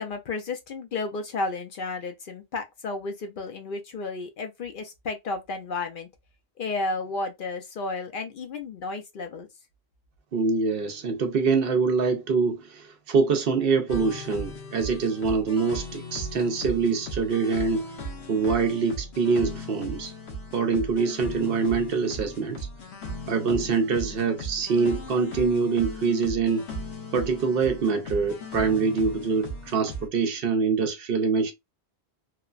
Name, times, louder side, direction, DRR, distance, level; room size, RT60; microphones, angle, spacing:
voice 1, 0.0-6.1 6.6-9.5, left 3 dB, 60° left, 0.7 m, -32 dB
voice 2, 10.3-17.9 18.3-20.1 20.5-22.7 23.3-26.7 27.1-31.5, right 5 dB, 65° right, 0.7 m, -25 dB
sound 1, 13.9-30.1, equal, 85° left, 1.0 m, -37 dB
3.1 x 2.1 x 2.3 m
omnidirectional pair, 1.1 m